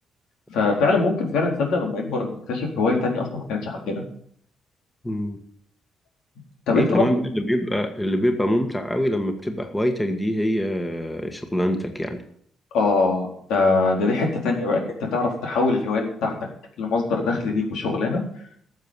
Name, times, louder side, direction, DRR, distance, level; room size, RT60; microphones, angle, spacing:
voice 1, 0.5-4.0 6.7-7.0 12.7-14.8 15.1-16.3 16.8-18.2, left 3 dB, 85° left, 0 dB, 4.1 m, -22 dB
voice 2, 5.0-5.4 6.7-12.2 17.5-17.6, equal, 10° left, 5 dB, 1.7 m, -24 dB
13.0 x 7.4 x 8.2 m, 0.65 s
cardioid pair, 90°, 0 cm